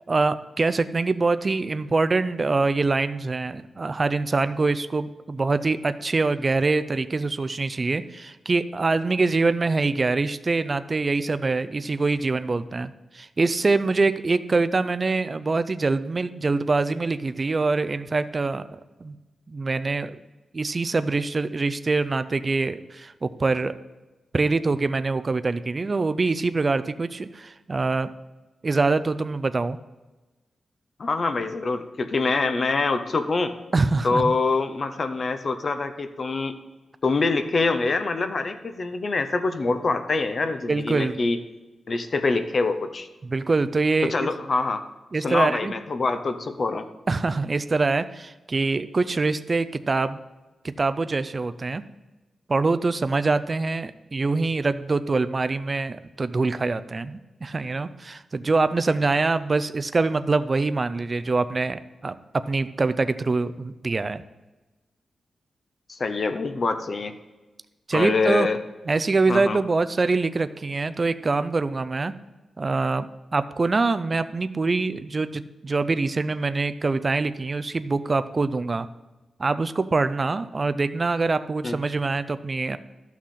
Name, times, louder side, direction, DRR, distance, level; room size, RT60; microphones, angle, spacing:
voice 1, 0.1-19.2 19.5-20.2 20.5-23.7 24.3-28.1 28.6-29.8 33.7-34.3 40.7-41.2 43.2-44.3 45.1-45.7 47.1-50.2 50.8-51.8 52.5-62.2 62.5-64.2 67.9-68.5 68.9-72.1 72.6-73.1 73.3-78.9 79.4-82.8, right 3 dB, 30° right, 12 dB, 0.4 m, -24 dB
voice 2, 31.0-33.6 34.0-36.6 37.0-41.4 41.9-43.1 44.1-44.8 45.2-46.9 65.9-67.1 67.9-68.6 69.3-69.6 81.6-81.7, left 3 dB, 40° left, 9 dB, 0.6 m, -25 dB
13.0 x 6.1 x 4.2 m, 1.1 s
wide cardioid pair, 150°, 0 cm